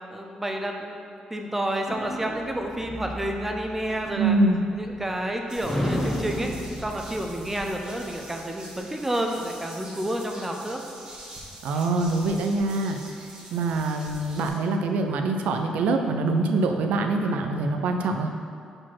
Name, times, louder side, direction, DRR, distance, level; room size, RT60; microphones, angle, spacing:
voice 1, 0.1-1.0 1.3-4.4 4.7-6.5 6.8-10.8, right 1 dB, 10° right, 2 dB, 0.6 m, -30 dB
sound 1, 1.9-5.3 5.6-8.3, equal, 15° left, 0.9 m, -33 dB
voice 2, 4.2-4.6 11.6-13.0 13.5-18.3, right 2 dB, 85° right, 4 dB, 0.5 m, -24 dB
sound 2, 5.5-14.5, right 1 dB, 35° right, 1.4 m, -44 dB
4.9 x 4.2 x 5.9 m, 2.4 s
cardioid pair, 110°, 2 cm